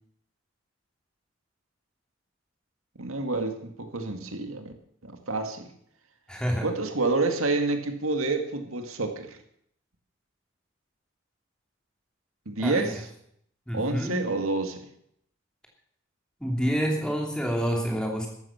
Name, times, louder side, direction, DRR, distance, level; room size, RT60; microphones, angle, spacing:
voice 1, 3.0-4.7 5.0-5.7 6.6-9.4 12.5-13.1 13.7-14.8, right 3 dB, 85° right, 6 dB, 2.0 m, -28 dB
voice 2, 6.3-6.7 12.6-12.9 13.7-14.2 16.4-18.3, equal, 5° left, 0 dB, 3.0 m, -27 dB
14.5 x 12.5 x 5.8 m, 0.68 s
head